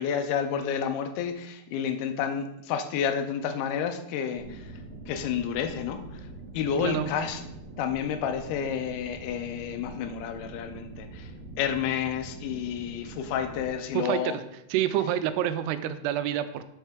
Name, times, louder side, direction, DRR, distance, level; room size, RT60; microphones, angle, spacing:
voice 1, 0.0-4.7 5.1-6.3 6.5-7.4 7.8-11.3 11.6-14.4, left 8 dB, 85° left, 7 dB, 2.6 m, -30 dB
sound 1, 4.3-13.7, right 2 dB, 55° right, 3.5 m, -44 dB
voice 2, 13.9-14.4 14.7-16.6, right 11 dB, 85° right, 11 dB, 2.6 m, -27 dB
6.5 x 6.5 x 4.8 m, 0.82 s
omnidirectional pair, 4.7 m